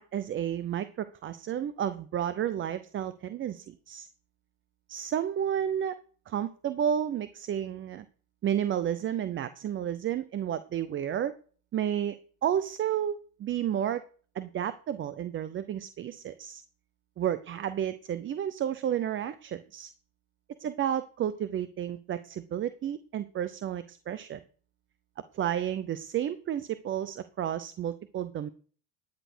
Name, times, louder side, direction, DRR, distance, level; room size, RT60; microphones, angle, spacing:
voice 1, 0.0-4.1 4.9-6.0 6.3-8.1 8.4-11.3 11.7-14.0 14.3-16.6 17.2-19.9 20.6-24.4 25.3-28.5, right 10 dB, 30° right, 14 dB, 0.6 m, -31 dB
10.5 x 9.2 x 6.2 m, 0.43 s
supercardioid pair, 115°, 40 cm